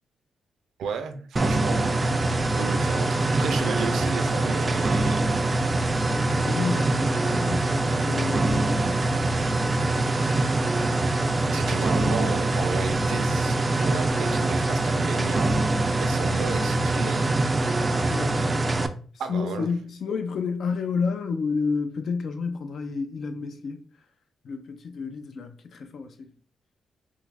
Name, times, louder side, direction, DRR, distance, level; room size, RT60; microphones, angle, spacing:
voice 1, 0.8-5.3 11.5-15.7 16.0-17.4 19.2-19.7, right 5 dB, 90° right, 0.5 m, -33 dB
sound 1, 1.4-18.9, right 2 dB, 25° right, 0.3 m, -24 dB
voice 2, 6.1-9.1 12.0-12.1 18.0-18.6 19.3-23.8 24.4-26.3, left 5 dB, 65° left, 0.5 m, -30 dB
3.1 x 2.4 x 3.3 m
cardioid pair, 115°, 0 cm